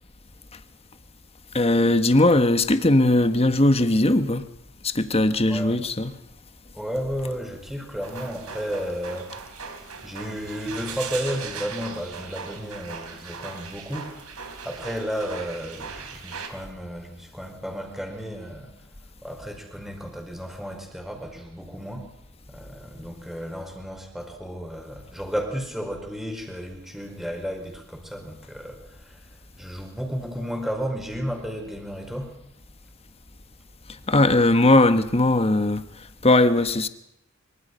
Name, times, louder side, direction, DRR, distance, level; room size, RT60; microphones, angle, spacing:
voice 1, 1.5-4.5 4.8-6.1 34.1-35.8 36.2-36.9, left 2 dB, 30° left, 1.4 m, -19 dB
voice 2, 6.7-9.3 10.0-14.2 14.6-18.7 19.2-22.1 22.5-29.3 29.6-32.4, equal, ahead, 5.1 m, -33 dB
sound 1, 8.0-16.5, right 5 dB, 80° right, 3.8 m, -39 dB
25.0 x 24.0 x 5.7 m
head